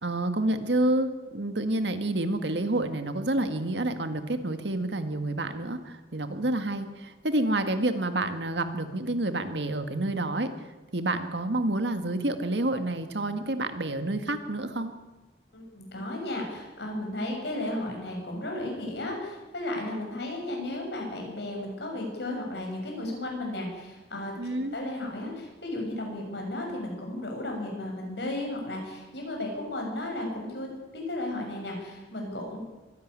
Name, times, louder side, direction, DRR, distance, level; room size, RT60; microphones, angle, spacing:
voice 1, 0.0-14.9 24.4-24.8, right 1 dB, 75° right, 8 dB, 1.9 m, -29 dB
voice 2, 15.5-24.3 24.7-32.6, left 1 dB, 70° left, 1 dB, 7.2 m, -34 dB
23.5 x 11.5 x 9.7 m, 1.1 s
head